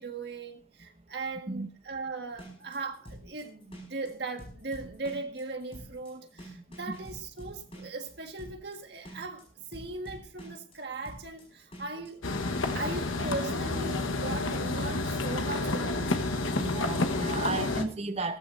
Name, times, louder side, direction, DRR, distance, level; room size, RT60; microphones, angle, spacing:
voice 1, 0.0-9.4 9.7-12.2 12.7-16.1, right 3 dB, 55° right, 1.7 m, -38 dB
sound 1, 2.3-12.1, right 1 dB, 30° left, 5.3 m, -47 dB
voice 2, 6.5-7.0 16.5-18.4, right 3 dB, 30° right, 0.9 m, -34 dB
sound 2, 12.2-17.8, left 2 dB, 85° left, 1.4 m, -30 dB
16.5 x 14.0 x 2.7 m
head